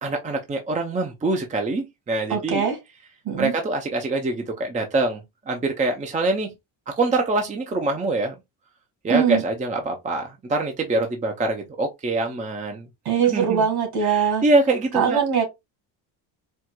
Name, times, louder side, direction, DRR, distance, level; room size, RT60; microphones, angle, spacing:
voice 1, 0.0-2.7 3.4-6.5 7.0-8.4 9.0-12.9 13.3-13.6 14.0-15.2, right 2 dB, 15° right, 0.6 m, -24 dB
voice 2, 2.3-2.8 3.2-3.5 9.1-9.4 13.1-14.4 14.9-15.4, right 7 dB, 60° right, 2.1 m, -21 dB
4.5 x 2.4 x 2.2 m
cardioid pair, 115°, 43 cm